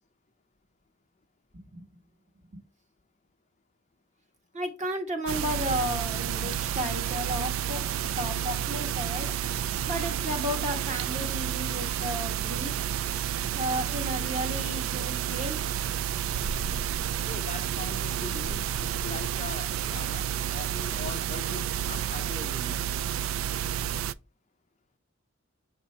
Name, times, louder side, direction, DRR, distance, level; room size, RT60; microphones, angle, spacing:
voice 1, 1.5-1.8 2.5-2.6 4.5-7.8 8.2-9.3 9.9-12.9 13.5-15.6 15.8-15.9, equal, 35° right, 1.3 m, -33 dB
sound 1, 5.3-24.1, right 9 dB, 65° right, 0.3 m, -30 dB
voice 2, 17.3-22.9, left 4 dB, 30° left, 0.5 m, -41 dB
6.5 x 2.8 x 5.3 m
head